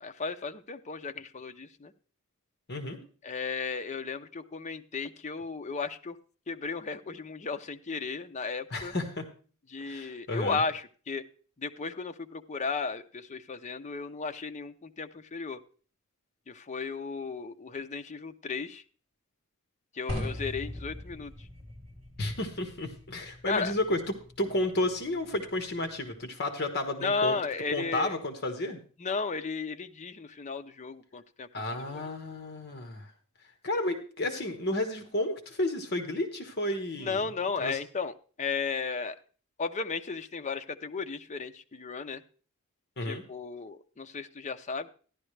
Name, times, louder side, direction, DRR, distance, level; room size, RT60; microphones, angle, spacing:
voice 1, 0.0-1.9 3.2-6.2 6.5-8.9 9.7-11.2 11.6-15.6 16.5-18.8 19.9-21.3 23.4-23.7 27.0-28.2 29.0-31.5 31.9-32.0 37.0-39.2 39.6-42.2 43.0-44.9, left 4 dB, 35° left, 8 dB, 0.6 m, -34 dB
voice 2, 8.7-9.2 9.8-10.6 22.2-27.4 27.7-28.8 31.5-33.1 33.6-37.2 37.6-37.8 43.0-43.2, left 1 dB, 50° left, 6 dB, 1.4 m, -32 dB
sound 1, 20.1-26.2, left 1 dB, 25° right, 2.7 m, -42 dB
13.0 x 11.0 x 3.3 m, 0.40 s
head